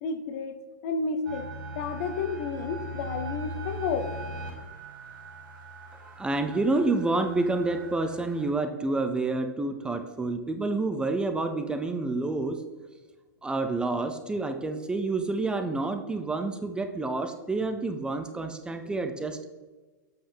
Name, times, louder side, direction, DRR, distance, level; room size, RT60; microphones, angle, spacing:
voice 1, 0.0-4.1, left 4 dB, 50° left, 10 dB, 0.7 m, -31 dB
sound 1, 1.3-8.5, right 1 dB, 90° right, 2.2 m, -40 dB
voice 2, 6.0-12.6 13.4-19.4, right 3 dB, 10° right, 6 dB, 0.4 m, -28 dB
7.9 x 5.4 x 3.4 m, 1.3 s
hypercardioid pair, 125°, 11 cm